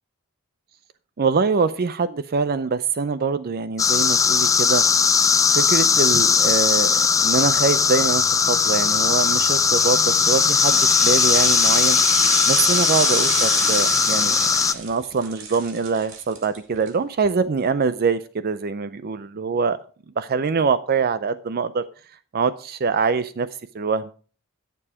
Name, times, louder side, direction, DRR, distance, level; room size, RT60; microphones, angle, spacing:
voice 1, 1.2-4.8 5.5-12.0 12.5-19.8 20.2-21.8 22.3-23.5 23.7-24.1, right 5 dB, 45° right, 14 dB, 0.5 m, -24 dB
sound 1, 3.8-14.7, left 5 dB, 15° left, 0.4 m, -18 dB
sound 2, 9.6-16.9 17.2-17.3, right 5 dB, 60° right, 2.3 m, -29 dB
11.5 x 6.9 x 4.9 m, 0.40 s
head